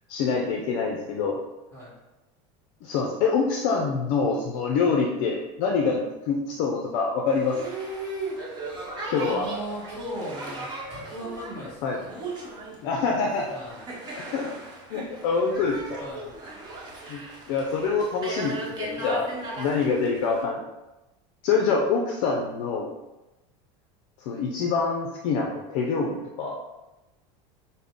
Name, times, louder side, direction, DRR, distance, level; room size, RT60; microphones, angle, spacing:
voice 1, 0.1-1.4 2.8-7.6 9.1-9.5 11.8-12.0 12.8-13.6 14.2-14.5 14.9-16.0 17.1-17.2 17.5-19.3 19.6-20.6 21.4-22.9 24.3-26.6, left 5 dB, 65° left, 1 dB, 0.5 m, -25 dB
Boat Water vehicle, 7.3-20.4, right 2 dB, 25° right, 0.9 m, -37 dB
voice 2, 9.3-12.1 13.5-13.9 16.0-16.3 18.9-19.3 21.6-21.9 22.6-22.8, equal, 15° left, -8 dB, 1.4 m, -38 dB
5.4 x 2.1 x 3.5 m, 1.0 s
supercardioid pair, 140°, 16 cm